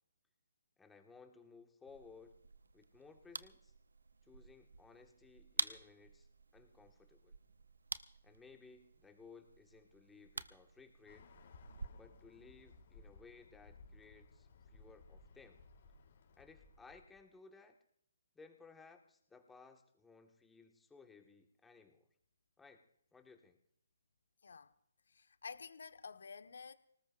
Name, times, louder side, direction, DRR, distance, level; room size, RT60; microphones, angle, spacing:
voice 1, 0.8-2.3 2.7-3.7 4.2-6.3 6.5-7.4 8.2-11.3 11.9-15.6 16.4-17.8 18.4-22.1 22.6-22.9 23.1-23.6, left 4 dB, 5° left, 1.6 m, -60 dB
sound 1, 1.9-11.9, right 4 dB, 80° right, 0.7 m, -47 dB
Bird, 11.1-17.2, left 3 dB, 50° left, 3.3 m, -60 dB
voice 2, 25.1-26.7, left 5 dB, 70° left, 1.3 m, -50 dB
25.5 x 19.0 x 2.6 m
hypercardioid pair, 145°, 0 cm